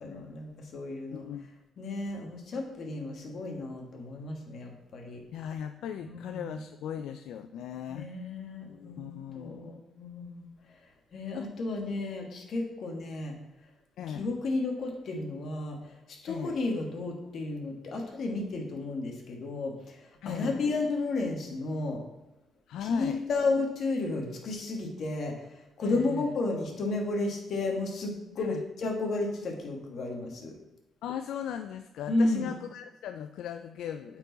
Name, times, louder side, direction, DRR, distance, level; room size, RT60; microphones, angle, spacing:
voice 1, 0.0-1.3 1.8-5.2 6.0-6.6 7.9-10.5 11.1-13.3 14.1-22.0 22.8-30.5 32.1-32.4, left 2 dB, 60° left, 1 dB, 1.6 m, -33 dB
voice 2, 1.1-1.5 5.3-8.1 8.7-9.8 11.3-11.5 14.0-14.2 16.3-16.6 20.2-20.7 22.7-23.2 25.8-26.3 28.4-28.6 31.0-34.2, left 9 dB, 80° left, 9 dB, 0.3 m, -38 dB
8.7 x 4.6 x 4.1 m, 0.95 s
cardioid pair, 90°, 0 cm